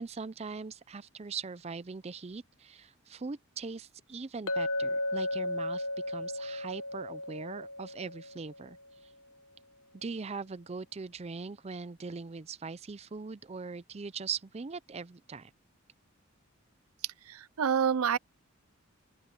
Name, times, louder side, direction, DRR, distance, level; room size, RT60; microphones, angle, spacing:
voice 1, 0.0-8.8 9.0-9.1 9.9-15.5, right 5 dB, 30° right, 0.5 m, -41 dB
Chink clink, 4.5-8.6, left 1 dB, 90° left, 1.0 m, -34 dB
voice 2, 17.3-18.2, right 7 dB, 85° right, 0.5 m, -27 dB
open air
head